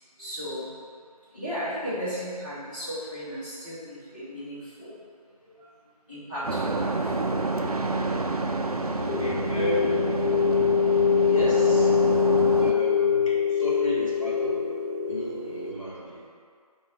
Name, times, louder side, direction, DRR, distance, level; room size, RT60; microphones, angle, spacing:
voice 1, 0.2-0.7 1.3-5.0 5.4-5.6 6.1-7.1, equal, 15° left, -16 dB, 1.4 m, -36 dB
sound 1, 6.4-12.7, right 3 dB, 70° right, 0.4 m, -28 dB
voice 2, 9.0-10.1 11.2-12.0 12.6-14.6 15.1-16.3, equal, 55° left, -6 dB, 1.3 m, -33 dB
sound 2, 9.1-15.7, left 7 dB, 75° left, 1.1 m, -24 dB
4.5 x 2.3 x 4.5 m, 2.1 s
figure-of-eight pair, 175°, 20 cm